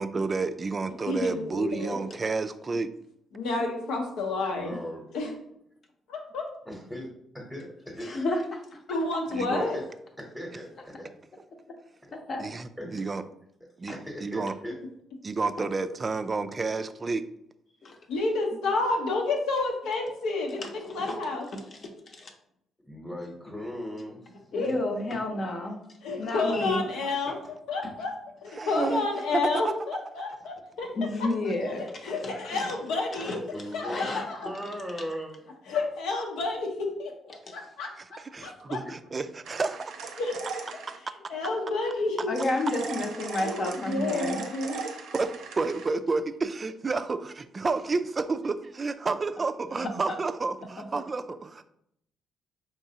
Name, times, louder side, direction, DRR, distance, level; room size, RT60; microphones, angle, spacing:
voice 1, 0.0-2.9 9.3-9.7 12.4-13.2 13.8-13.9 14.2-14.6 15.2-17.2 18.5-18.6 28.5-29.1 29.3-29.8 38.0-40.2 45.1-51.6, right 3 dB, 35° right, 11 dB, 0.3 m, -30 dB
voice 2, 1.1-2.0 3.3-4.8 5.1-5.3 6.1-6.4 8.9-9.8 18.1-21.5 24.5-24.7 25.6-25.7 26.0-27.4 27.7-28.1 28.4-30.9 31.2-31.3 31.7-33.4 33.7-34.5 35.7-37.1 37.5-37.9 38.4-38.8 40.2-40.3 41.3-42.3 43.4-44.8, left 3 dB, 90° left, 1 dB, 0.9 m, -30 dB
voice 3, 4.5-5.0 6.7-8.1 9.7-9.9 10.2-11.1 12.8-13.1 13.9-14.8 17.7-17.9 22.8-24.3 27.2-27.3 32.5-32.6 33.5-34.1 34.4-35.6 38.8-38.9, equal, ahead, -1 dB, 0.9 m, -38 dB
voice 4, 8.0-8.8 12.1-12.4 13.9-14.0 17.8-18.0 20.6-21.2 21.5-22.3 24.5-25.8 26.2-26.8 27.8-27.9 30.9-32.3 33.1-33.4 33.9-34.3 37.3-37.5 42.3-44.4 49.8-50.2 50.8-50.9, left 2 dB, 50° left, 2 dB, 0.8 m, -31 dB
sound 1, 39.4-41.0 42.4-45.9, right 5 dB, 80° right, 0.6 m, -38 dB
4.6 x 3.0 x 2.8 m, 0.74 s
cardioid pair, 90°, 0 cm